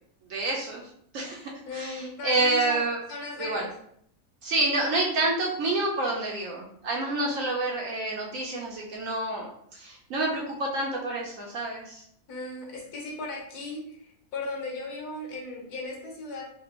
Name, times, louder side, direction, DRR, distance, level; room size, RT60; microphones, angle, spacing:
voice 1, 0.3-0.9 1.1-3.0 3.4-3.7 4.4-9.5 9.7-12.0, right 2 dB, 65° right, -2 dB, 0.9 m, -28 dB
voice 2, 1.7-3.7 12.3-16.4, left 2 dB, 70° left, -1 dB, 1.3 m, -37 dB
3.4 x 2.4 x 2.9 m, 0.68 s
omnidirectional pair, 1.7 m